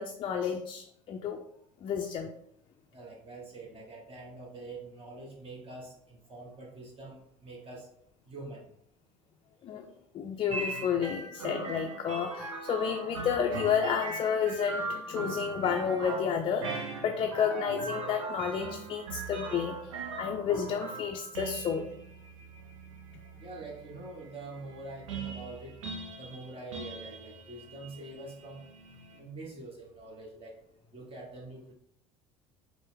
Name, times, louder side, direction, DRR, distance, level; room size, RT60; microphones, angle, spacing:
voice 1, 0.0-1.4 1.8-2.3 9.6-9.9 10.1-19.9 20.2-21.9, left 7 dB, 35° left, 3 dB, 0.4 m, -31 dB
voice 2, 2.9-7.9 8.3-8.7 23.4-25.8 26.2-28.6 29.1-30.6 30.9-31.7, right 2 dB, 35° right, -1 dB, 1.0 m, -45 dB
sound 1, 10.5-29.2, right 3 dB, 80° right, 0.6 m, -40 dB
4.4 x 2.1 x 3.5 m, 0.69 s
hypercardioid pair, 70°, 16 cm